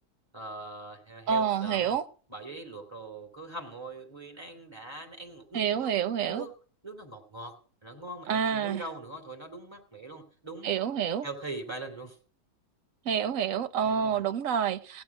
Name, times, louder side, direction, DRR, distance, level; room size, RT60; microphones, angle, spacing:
voice 1, 0.3-2.0 2.3-5.9 6.2-6.5 6.8-7.5 7.8-10.7 11.2-12.2 13.8-14.2, right 2 dB, 15° right, 3.2 m, -42 dB
voice 2, 1.3-2.0 5.5-6.4 8.3-8.8 10.6-11.3 13.0-15.0, right 8 dB, 60° right, 1.2 m, -28 dB
16.5 x 9.4 x 6.0 m
omnidirectional pair, 1.6 m